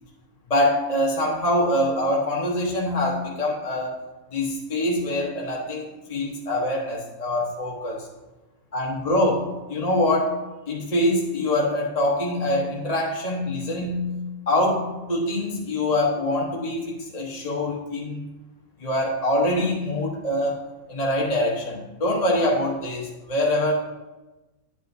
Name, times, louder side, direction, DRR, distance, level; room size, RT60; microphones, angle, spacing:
voice 1, 0.5-3.9 4.3-8.1 8.7-10.4 10.7-14.2 14.5-18.3 18.8-20.6 20.9-23.7, left 1 dB, 30° left, -3 dB, 1.0 m, -24 dB
10.5 x 8.2 x 2.7 m, 1.1 s
omnidirectional pair, 1.5 m